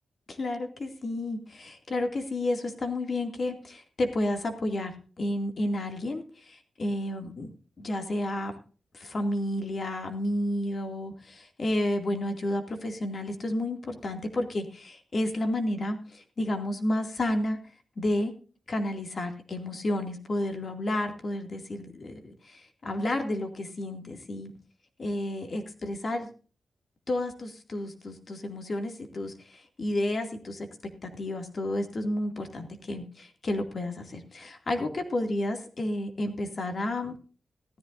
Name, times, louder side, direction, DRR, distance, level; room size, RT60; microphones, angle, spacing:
voice 1, 0.3-4.9 5.2-8.5 8.9-17.6 18.0-18.3 18.7-24.5 25.0-26.3 27.1-30.7 31.2-37.2, left 1 dB, 40° left, 5 dB, 2.4 m, -31 dB
16.0 x 13.5 x 2.6 m, 0.38 s
wide cardioid pair, 130°, 0 cm